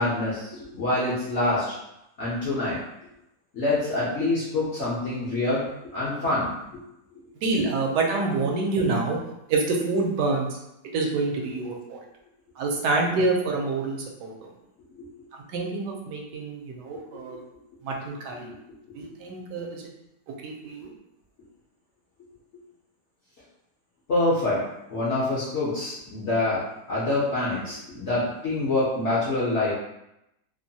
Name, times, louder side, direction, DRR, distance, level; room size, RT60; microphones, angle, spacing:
voice 1, 0.0-1.7 2.2-2.8 3.5-5.6 5.9-6.8 24.1-24.6 24.9-26.6 26.9-29.7, left 2 dB, 60° left, -8 dB, 0.7 m, -26 dB
voice 2, 7.4-9.2 9.5-10.6 10.9-12.0 12.6-14.3 15.5-17.4 17.8-18.5 19.0-19.8 20.4-20.9, right 3 dB, 75° right, 0 dB, 1.1 m, -27 dB
3.0 x 2.2 x 2.7 m, 0.84 s
omnidirectional pair, 1.9 m